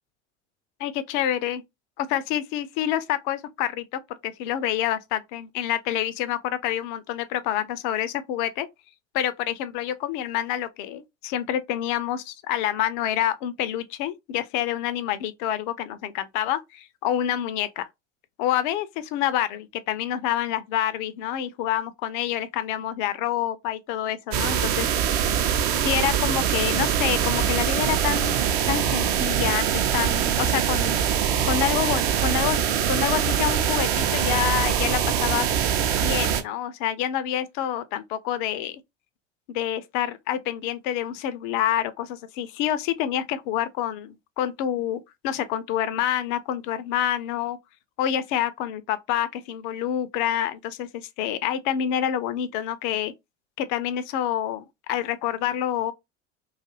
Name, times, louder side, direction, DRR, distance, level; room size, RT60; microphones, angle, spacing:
voice 1, 0.8-1.6 2.0-8.7 9.1-17.9 18.4-24.9 25.8-31.0 31.4-32.6 32.9-35.5 36.0-38.8 39.5-47.6 48.0-53.1 53.6-55.9, left 11 dB, 40° left, 0.4 m, -27 dB
sound 1, 24.3-36.4, right 8 dB, 50° right, 0.6 m, -23 dB
sound 2, 30.9-36.1, right 7 dB, 65° right, 0.9 m, -41 dB
2.5 x 2.4 x 2.7 m
figure-of-eight pair, 75°, 38 cm